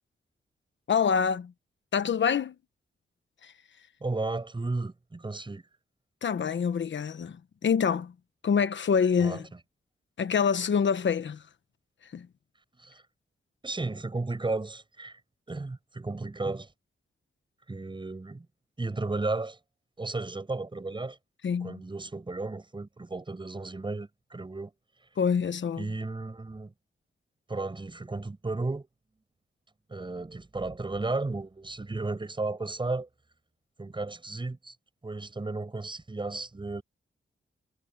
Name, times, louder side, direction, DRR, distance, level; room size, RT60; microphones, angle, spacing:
voice 1, 0.9-1.5 1.9-2.6 3.4-3.5 6.2-8.1 8.4-9.5 10.2-11.4 12.1-12.3 21.4-21.8 25.2-25.9, left 6 dB, 65° left, 1.1 m, -26 dB
voice 2, 4.0-5.6 9.2-9.4 12.8-13.0 13.6-15.2 15.5-16.7 17.7-18.5 18.8-19.6 20.0-21.2 21.6-24.7 25.8-26.7 27.5-28.9 29.9-33.1 33.8-34.7 35.0-36.8, right 3 dB, 25° right, 7.9 m, -34 dB
wide cardioid pair, 170°, 21 cm